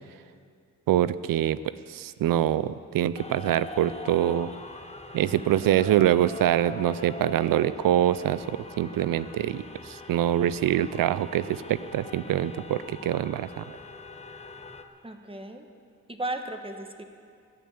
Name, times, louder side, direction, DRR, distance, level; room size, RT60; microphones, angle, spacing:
voice 1, 0.9-1.6 1.9-4.5 5.1-13.8, right 11 dB, 85° right, 15 dB, 0.5 m, -25 dB
sound 1, 3.1-14.8, left 3 dB, 20° left, 1.1 m, -43 dB
voice 2, 15.0-15.7 16.1-17.0, right 2 dB, 15° right, 6 dB, 1.2 m, -35 dB
15.0 x 9.3 x 8.7 m, 2.3 s
cardioid pair, 85°, 33 cm